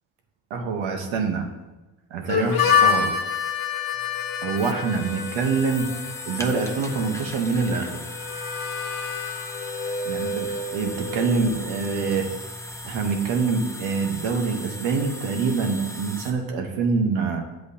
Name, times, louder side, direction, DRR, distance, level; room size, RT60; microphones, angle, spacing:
voice 1, 0.5-1.5 2.1-3.1 4.4-5.9 6.2-8.0 10.1-12.3 12.8-17.4, right 4 dB, 90° right, 4 dB, 1.1 m, -25 dB
Harmonica, 2.3-11.9, left 6 dB, 55° left, 1.2 m, -28 dB
sound 1, 3.9-16.3, left 1 dB, 5° left, 0.7 m, -38 dB
8.5 x 7.9 x 2.8 m, 1.1 s
cardioid pair, 75°, 45 cm